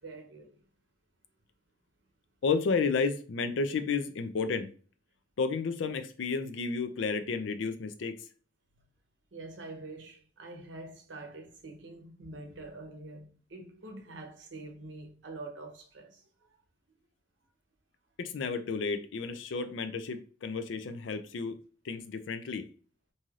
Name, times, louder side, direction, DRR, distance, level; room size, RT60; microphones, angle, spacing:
voice 1, 0.0-0.6 9.3-16.2, right 2 dB, 75° right, 0.7 m, -45 dB
voice 2, 2.4-4.7 5.4-8.1 18.2-21.6 21.8-22.7, left 4 dB, 85° left, 0.4 m, -32 dB
3.1 x 2.7 x 2.3 m
head